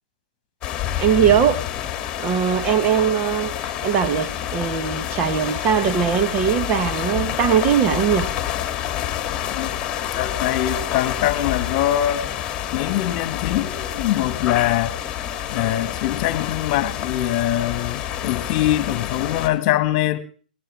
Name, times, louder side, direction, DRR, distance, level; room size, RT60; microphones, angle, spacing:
sound 1, 0.6-19.5, left 11 dB, 20° left, 2.6 m, -28 dB
voice 1, 1.0-1.6 2.2-8.3, right 8 dB, 30° right, 1.4 m, -20 dB
voice 2, 10.1-12.3 12.7-15.0 15.5-20.2, left 13 dB, 40° left, 1.9 m, -23 dB
20.5 x 19.0 x 3.5 m
figure-of-eight pair, 120°, 5 cm